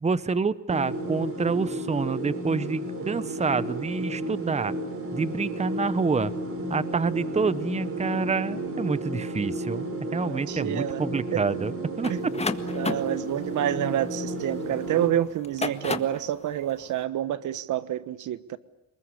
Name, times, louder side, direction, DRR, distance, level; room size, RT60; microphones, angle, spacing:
voice 1, 0.0-4.7 5.1-6.3 6.7-11.7 12.0-12.1, right 4 dB, 20° right, 16 dB, 1.0 m, -27 dB
sound 1, 0.7-15.1, right 1 dB, 45° right, 5.6 m, -32 dB
voice 2, 10.2-11.0 11.3-11.6 12.1-12.2 12.7-18.6, right 11 dB, 80° right, 15 dB, 1.4 m, -28 dB
sound 2, 12.0-14.8 15.4-16.3, left 3 dB, 20° left, 1.7 m, -32 dB
28.5 x 20.5 x 9.9 m, 0.86 s
cardioid pair, 90°, 30 cm